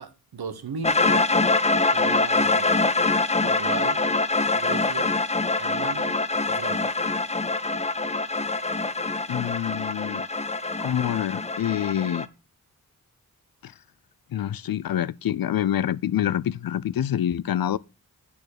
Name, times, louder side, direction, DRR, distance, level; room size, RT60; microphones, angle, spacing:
voice 1, 0.0-1.5 1.9-2.9 3.4-4.1 4.5-5.2 5.6-6.2 6.4-6.9, right 5 dB, 75° right, 1.2 m, -36 dB
sound 1, 0.8-12.3, left 3 dB, 20° left, 0.6 m, -24 dB
voice 2, 9.3-10.2 10.8-12.3 13.6-13.7 14.3-17.8, left 11 dB, 65° left, 0.5 m, -26 dB
8.7 x 4.2 x 6.5 m
cardioid pair, 45°, 37 cm